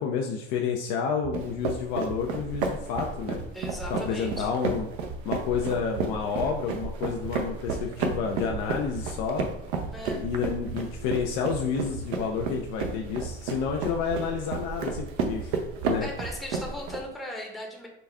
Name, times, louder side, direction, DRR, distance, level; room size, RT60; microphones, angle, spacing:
voice 1, 0.0-3.4 3.9-4.9 5.2-9.5 10.1-15.6 15.8-16.1, left 6 dB, 65° left, 1 dB, 0.6 m, -30 dB
sound 1, 1.2-16.6, right 5 dB, 45° right, 0.5 m, -42 dB
sound 2, 1.3-17.0, right 4 dB, 80° right, 0.7 m, -32 dB
voice 2, 3.5-4.5 9.9-10.2 16.0-17.9, left 1 dB, ahead, 0 dB, 0.7 m, -38 dB
3.9 x 2.3 x 3.4 m, 0.78 s
supercardioid pair, 90°, 33 cm